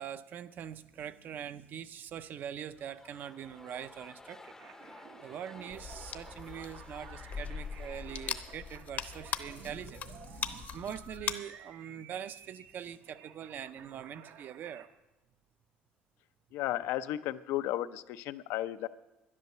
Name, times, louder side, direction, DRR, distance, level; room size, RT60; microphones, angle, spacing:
voice 1, 0.0-4.5 5.2-14.9, right 9 dB, 50° right, 13 dB, 0.6 m, -43 dB
sound 1, 2.7-11.2, left 2 dB, 10° left, 0.6 m, -55 dB
sound 2, 4.6-14.9, right 8 dB, 70° right, 0.9 m, -54 dB
sound 3, 5.7-11.3, left 7 dB, 45° left, 0.8 m, -40 dB
voice 2, 16.5-18.9, left 13 dB, 80° left, 12 dB, 0.6 m, -34 dB
11.0 x 10.5 x 6.7 m, 1.0 s
cardioid pair, 125°, 4 cm